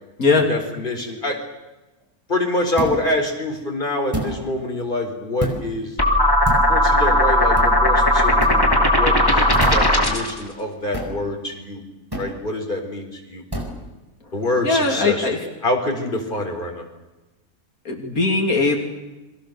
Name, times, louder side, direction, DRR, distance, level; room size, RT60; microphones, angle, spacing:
voice 1, 0.4-1.4 2.3-6.0 6.7-9.5 9.7-11.8 12.2-13.4 14.3-15.3 15.6-16.9, left 1 dB, 35° left, 2 dB, 4.8 m, -25 dB
sound 1, 2.8-3.1 4.1-4.4 5.4-5.7 6.5-6.7 7.6-7.8 8.4-8.6 9.5-10.0 10.9-11.2 12.1-12.4 13.5-13.8, right 1 dB, 15° right, 4.7 m, -27 dB
sound 2, 6.0-10.4, left 1 dB, 15° left, 3.0 m, -17 dB
voice 2, 14.6-15.4 17.8-18.8, left 3 dB, 80° left, 2 dB, 3.4 m, -19 dB
29.5 x 23.5 x 6.9 m, 1.1 s
omnidirectional pair, 1.5 m